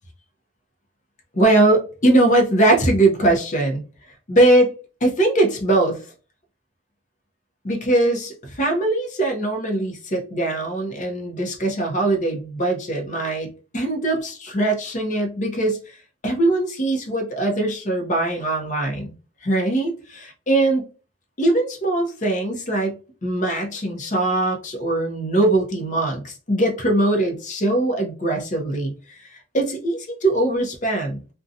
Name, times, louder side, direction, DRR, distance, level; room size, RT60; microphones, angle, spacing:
voice 1, 1.3-3.8 4.3-4.7 5.0-6.0 7.6-13.5 13.7-16.0 16.2-19.1 19.4-20.8 21.4-23.0 23.2-31.2, right 2 dB, 35° left, 3 dB, 0.6 m, -21 dB
2.5 x 2.2 x 2.6 m, 0.35 s
head